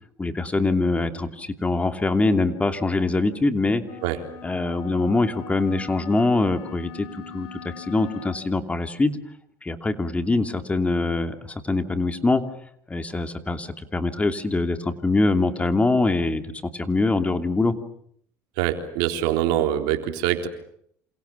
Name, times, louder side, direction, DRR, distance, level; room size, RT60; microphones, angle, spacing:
voice 1, 0.2-3.8 4.4-9.2 9.6-12.4 12.9-17.7, left 2 dB, 15° left, 8 dB, 2.8 m, -23 dB
sound 1, 3.8-8.5, left 6 dB, 75° left, 4.6 m, -41 dB
voice 2, 18.6-20.5, right 12 dB, 80° right, 6 dB, 3.8 m, -24 dB
28.5 x 28.0 x 7.0 m, 0.67 s
supercardioid pair, 95°, 8 cm